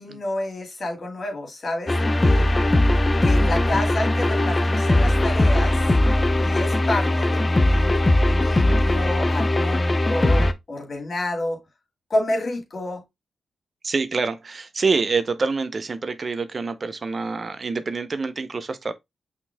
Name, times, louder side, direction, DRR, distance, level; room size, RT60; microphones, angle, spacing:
voice 1, 0.0-2.5 3.2-5.8 6.4-11.6 12.1-13.0, left 1 dB, 55° left, 2.4 m, -29 dB
sound 1, 1.9-10.5, left 1 dB, 30° left, 0.7 m, -19 dB
voice 2, 13.8-18.9, right 4 dB, 50° right, 0.6 m, -26 dB
6.0 x 3.8 x 2.2 m
cardioid pair, 50°, 0 cm